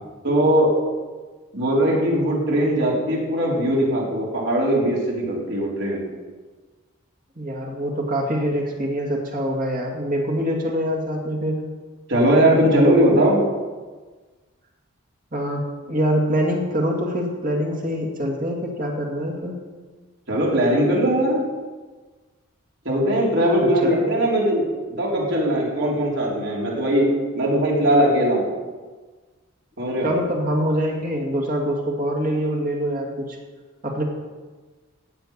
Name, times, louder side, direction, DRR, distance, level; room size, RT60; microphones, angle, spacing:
voice 1, 0.2-0.7 1.5-6.1 12.1-13.4 20.3-21.4 22.8-24.6 25.0-28.5 29.8-30.1, right 1 dB, 55° right, -4 dB, 3.9 m, -20 dB
voice 2, 7.4-11.6 15.3-19.6 23.6-24.1 30.0-33.4 33.8-34.0, equal, 40° right, 0 dB, 2.3 m, -24 dB
15.5 x 5.7 x 8.8 m, 1.4 s
head